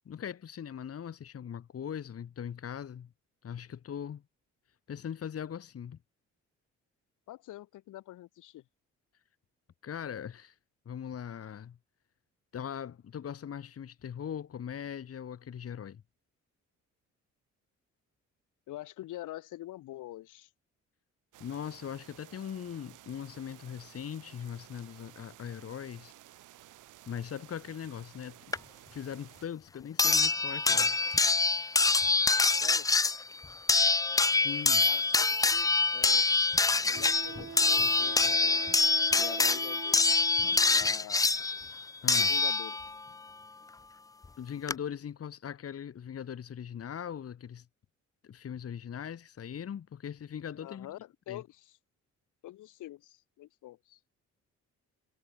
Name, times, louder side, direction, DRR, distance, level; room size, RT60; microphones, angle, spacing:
voice 1, 0.1-3.1 3.4-4.2 4.9-6.0 9.8-10.6 10.9-11.8 12.5-16.0 21.4-26.1 27.1-28.4 28.9-31.0 34.3-34.9 42.0-42.3 44.4-47.7 48.2-51.0 51.3-51.4, left 8 dB, 50° left, 2.1 m, -40 dB
voice 2, 7.3-8.6 18.7-20.5 32.6-32.9 33.7-33.8 34.8-36.2 36.8-38.1 38.4-38.7 39.1-41.3 42.1-42.8 50.6-51.8 52.4-54.0, left 15 dB, 85° left, 3.9 m, -46 dB
sound 1, 21.3-29.5, right 15 dB, 85° right, 6.5 m, -55 dB
sound 2, 28.5-28.6 30.0-43.0 44.2-44.3 44.7-44.8, left 3 dB, 10° left, 0.4 m, -25 dB
Wind instrument woodwind instrument, 35.6-35.7 36.9-41.0, right 6 dB, 45° right, 4.1 m, -44 dB
cardioid pair, 90°, 30 cm